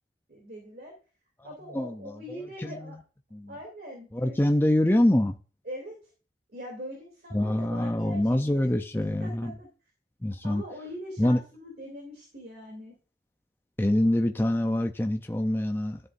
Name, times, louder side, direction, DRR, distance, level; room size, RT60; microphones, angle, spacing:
voice 1, 0.3-0.9 1.4-3.0 3.5-4.4 5.6-6.0 6.5-9.7 10.4-12.9, equal, 55° right, 2.9 m, -42 dB
voice 2, 1.4-2.9 3.3-3.5 4.1-5.4 7.3-9.5 10.2-10.6 11.2-11.4 13.8-16.0, left 1 dB, 10° left, 0.5 m, -25 dB
12.5 x 7.8 x 2.6 m
head